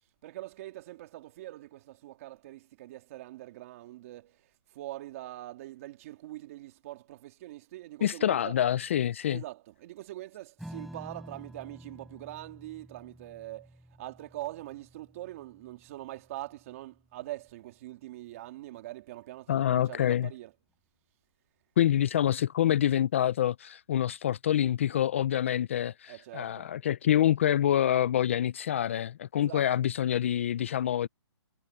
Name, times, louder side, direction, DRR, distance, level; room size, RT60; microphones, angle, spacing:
voice 1, 0.2-8.6 9.3-20.6 26.1-26.7 29.4-29.9, right 16 dB, 30° right, 2.7 m, -43 dB
voice 2, 8.0-9.4 19.5-20.3 21.8-31.1, left 11 dB, 25° left, 0.4 m, -26 dB
Strum, 10.6-17.4, right 1 dB, ahead, 7.7 m, -50 dB
hypercardioid pair, 165°, 15 cm